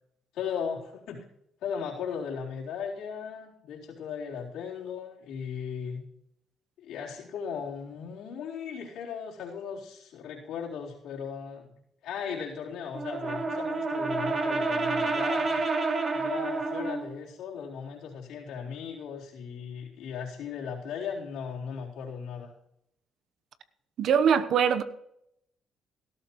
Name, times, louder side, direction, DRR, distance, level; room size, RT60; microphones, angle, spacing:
voice 1, 0.3-1.2 1.6-6.0 6.8-11.7 12.0-15.5 16.1-22.5, left 7 dB, 80° left, -4 dB, 3.9 m, -37 dB
Brass instrument, 12.9-17.1, right 3 dB, 40° right, 3.0 m, -29 dB
voice 2, 24.0-24.8, right 7 dB, 65° right, 11 dB, 1.0 m, -22 dB
18.0 x 13.0 x 3.1 m, 0.78 s
cardioid pair, 85°, 0 cm